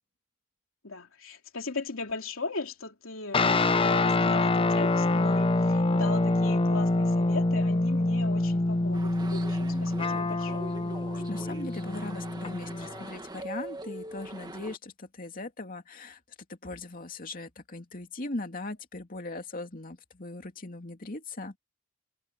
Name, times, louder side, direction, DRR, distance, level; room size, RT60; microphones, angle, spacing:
voice 1, 0.8-10.9, left 3 dB, 90° left, 3.0 m, -38 dB
sound 1, 3.3-13.0, left 2 dB, 25° left, 0.6 m, -26 dB
sound 2, 8.9-14.8, right 2 dB, 20° right, 1.5 m, -42 dB
voice 2, 11.1-16.2 16.6-21.6, left 2 dB, 45° left, 2.6 m, -39 dB
head